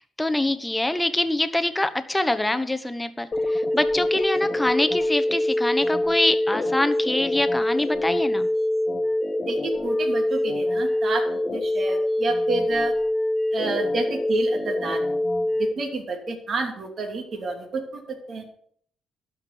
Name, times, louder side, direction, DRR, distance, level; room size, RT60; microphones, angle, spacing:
voice 1, 0.2-3.3 3.5-8.5, left 1 dB, 10° left, 10 dB, 1.1 m, -24 dB
sound 1, 3.3-15.7, left 1 dB, 30° left, 1.5 m, -24 dB
voice 2, 9.4-11.2 11.5-12.9 13.5-15.0 15.6-18.4, right 3 dB, 50° right, 2 dB, 2.7 m, -29 dB
12.0 x 5.3 x 8.5 m, 0.63 s
cardioid pair, 90°, 0 cm